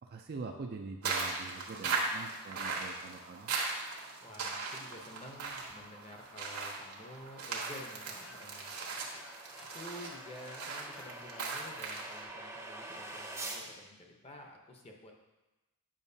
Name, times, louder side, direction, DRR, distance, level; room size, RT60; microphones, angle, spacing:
voice 1, 0.0-3.5, right 4 dB, 45° right, 3 dB, 0.4 m, -44 dB
sound 1, 1.0-12.2, right 4 dB, 80° right, 1.2 m, -39 dB
voice 2, 4.2-15.1, left 1 dB, 25° left, 2 dB, 0.8 m, -51 dB
sound 2, 5.3-13.6, right 2 dB, 10° right, 0.7 m, -48 dB
sound 3, 7.7-12.1, left 3 dB, 80° left, 0.8 m, -57 dB
8.7 x 5.8 x 2.7 m, 1.1 s
head